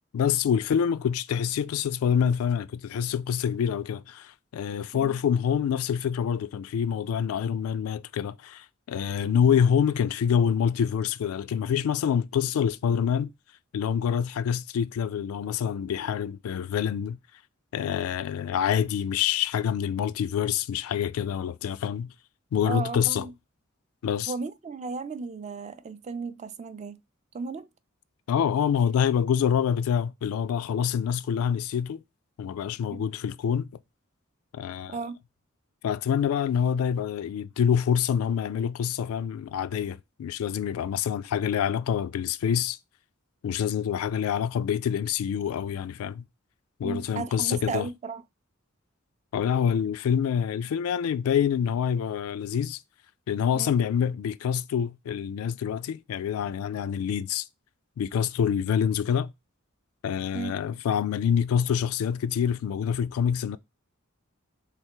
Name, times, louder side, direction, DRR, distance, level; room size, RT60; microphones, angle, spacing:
voice 1, 0.1-13.3 13.7-17.2 17.7-22.1 22.5-23.3 24.0-24.3 28.3-32.0 32.4-33.7 34.5-35.0 35.8-42.8 43.4-46.2 46.8-47.9 49.3-52.8 53.3-57.4 58.0-59.3 60.0-63.6, left 8 dB, 85° left, 0.3 m, -26 dB
voice 2, 22.7-23.3 24.3-27.0 27.3-27.7 32.9-33.1 34.9-35.2 46.8-48.2 53.5-53.7 60.3-60.5, right 4 dB, 35° right, 0.4 m, -35 dB
3.4 x 3.2 x 4.5 m
head